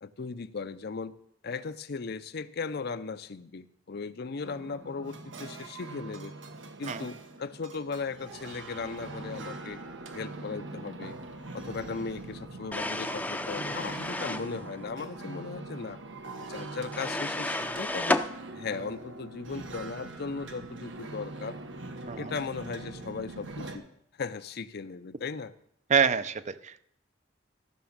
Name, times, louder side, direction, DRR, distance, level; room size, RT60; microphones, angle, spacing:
voice 1, 0.0-1.2 1.4-6.3 6.8-9.8 10.1-11.2 11.5-16.0 16.4-18.2 18.5-21.6 22.2-23.8 24.2-25.5, left 4 dB, 60° left, 13 dB, 0.6 m, -37 dB
sound 1, 4.4-23.8, right 2 dB, 90° right, 1.3 m, -42 dB
sound 2, 12.7-14.5 16.9-18.3, left 1 dB, 10° left, 0.6 m, -31 dB
voice 2, 25.9-26.8, right 7 dB, 40° right, 13 dB, 0.6 m, -26 dB
14.5 x 6.1 x 7.3 m, 0.72 s
head